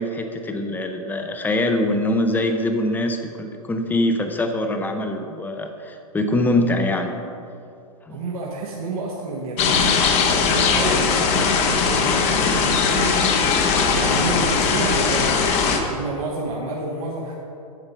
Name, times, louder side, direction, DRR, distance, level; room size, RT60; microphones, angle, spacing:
voice 1, 0.0-7.2 8.1-8.2, left 1 dB, 10° left, 5 dB, 0.7 m, -23 dB
voice 2, 8.1-13.2 13.9-15.3 15.6-17.3, right 2 dB, 65° right, -3 dB, 1.4 m, -29 dB
sound 1, 9.6-15.8, left 5 dB, 35° left, 1.1 m, -19 dB
9.3 x 6.8 x 5.5 m, 2.6 s
hypercardioid pair, 125°, 19 cm